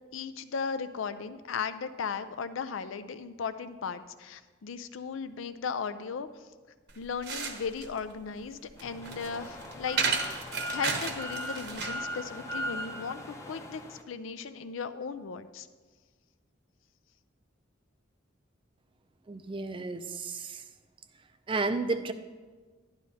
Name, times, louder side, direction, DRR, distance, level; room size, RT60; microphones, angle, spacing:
voice 1, 0.1-6.3 7.0-15.7, left 5 dB, 80° left, 12 dB, 0.5 m, -36 dB
sound 1, 6.9-12.1, right 5 dB, 55° right, 0.9 m, -34 dB
sound 2, 8.8-14.0, equal, 15° left, 0.6 m, -39 dB
voice 2, 19.3-20.6 21.5-22.1, right 3 dB, 25° right, 10 dB, 0.4 m, -32 dB
11.5 x 11.0 x 2.8 m, 1.4 s
head